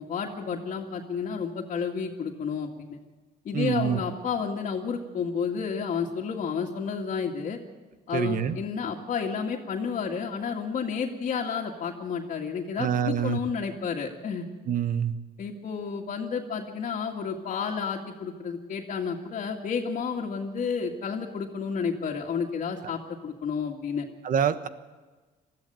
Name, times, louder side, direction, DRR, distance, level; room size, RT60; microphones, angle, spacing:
voice 1, 0.0-3.0 3.4-7.6 8.1-14.5 15.4-24.1, left 6 dB, 50° left, -2 dB, 2.1 m, -31 dB
voice 2, 3.5-4.0 8.1-8.6 12.8-13.4 14.7-15.1 24.2-24.7, right 8 dB, 55° right, 11 dB, 1.2 m, -26 dB
20.5 x 14.0 x 9.1 m, 1.3 s
cardioid pair, 110°, 17 cm